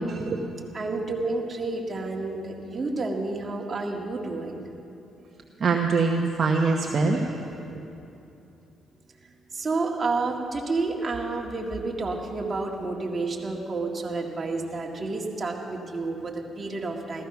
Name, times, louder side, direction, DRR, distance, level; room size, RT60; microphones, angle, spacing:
voice 1, 0.1-0.4 5.6-7.4, right 4 dB, 50° right, 1 dB, 1.1 m, -23 dB
voice 2, 0.7-4.6 9.5-17.2, right 3 dB, 35° right, 0 dB, 2.0 m, -30 dB
14.5 x 14.5 x 5.9 m, 2.9 s
cardioid pair, 90°, 0 cm